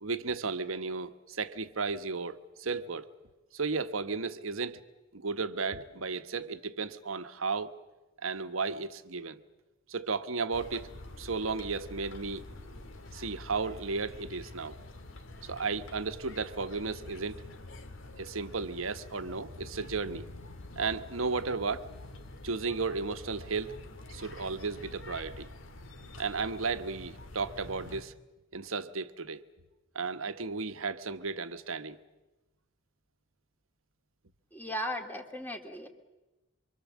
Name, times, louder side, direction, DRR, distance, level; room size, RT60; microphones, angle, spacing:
voice 1, 0.0-3.1 3.5-4.8 5.1-7.8 8.2-9.4 9.9-10.9 11.2-12.4 13.1-14.8 15.4-17.5 18.2-20.2 20.8-21.9 22.4-23.8 24.1-25.5 26.2-28.1 28.5-29.4 29.9-32.0, right 4 dB, 80° right, 1.2 m, -34 dB
sound 1, 10.5-28.0, left 2 dB, 70° left, 1.8 m, -47 dB
voice 2, 34.5-35.9, equal, 10° left, 2.2 m, -37 dB
25.5 x 25.0 x 7.4 m
head